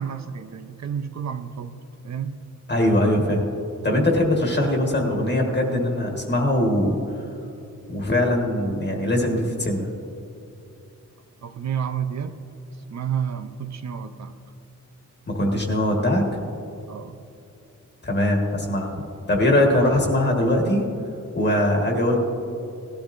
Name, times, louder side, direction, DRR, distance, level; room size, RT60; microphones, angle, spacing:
voice 1, 0.0-1.8 2.0-2.4 11.4-12.4 12.9-14.4 16.9-17.2 19.7-19.9, right 8 dB, 60° right, 10 dB, 0.7 m, -30 dB
voice 2, 2.7-3.4 3.8-7.0 7.9-9.9 15.3-16.2 18.0-19.0 19.3-20.8 21.3-22.2, left 1 dB, 35° left, 0 dB, 1.5 m, -21 dB
18.5 x 13.0 x 2.6 m, 2.7 s
wide cardioid pair, 150°, 32 cm